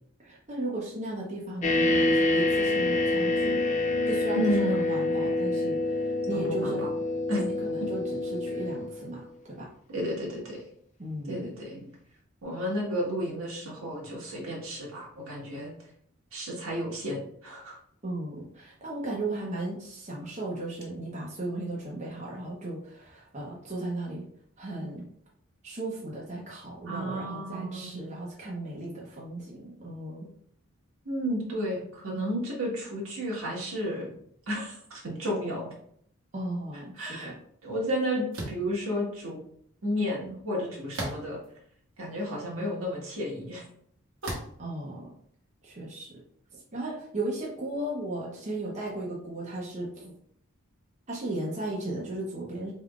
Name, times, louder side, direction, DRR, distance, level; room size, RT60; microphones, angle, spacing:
voice 1, 0.2-3.6 4.1-6.8 7.3-9.7 11.0-11.5 18.0-24.3 24.6-25.1 25.6-30.3 36.3-37.4 44.6-45.1 45.6-46.2 46.5-50.1 51.1-52.7, right 2 dB, 35° right, -4 dB, 0.8 m, -36 dB
sound 1, 1.6-9.1, left 2 dB, 35° left, 0.5 m, -27 dB
voice 2, 4.3-4.8 6.3-6.9 7.3-7.4 9.9-10.6 11.3-11.9 12.4-15.7 16.3-17.8 26.9-28.2 31.0-34.1 34.5-35.7 37.0-37.3 37.6-39.4 39.8-41.4 42.0-43.6, equal, 85° right, -4 dB, 1.6 m, -32 dB
sound 2, 38.3-38.7 40.9-41.5 42.2-42.3 44.2-44.6, right 1 dB, 65° right, 1.1 m, -35 dB
4.2 x 3.6 x 2.4 m, 0.64 s
head